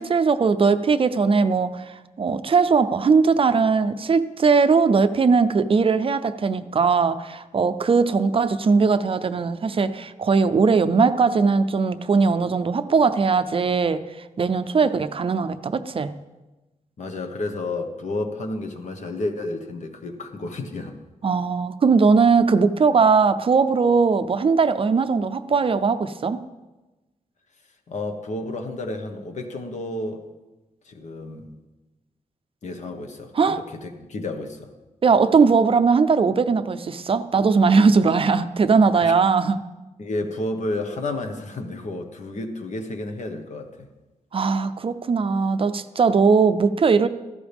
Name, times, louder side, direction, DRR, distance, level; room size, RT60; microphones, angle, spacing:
voice 1, 0.0-14.0 14.4-16.2 21.2-26.4 33.4-33.6 35.0-39.6 44.3-47.1, right 5 dB, 45° right, 11 dB, 0.5 m, -19 dB
voice 2, 17.0-21.0 27.9-30.2 30.8-31.5 32.6-34.7 39.0-39.1 40.0-43.9, left 2 dB, 60° left, 5 dB, 1.4 m, -31 dB
16.0 x 14.0 x 3.6 m, 1.1 s
wide cardioid pair, 175°, 14 cm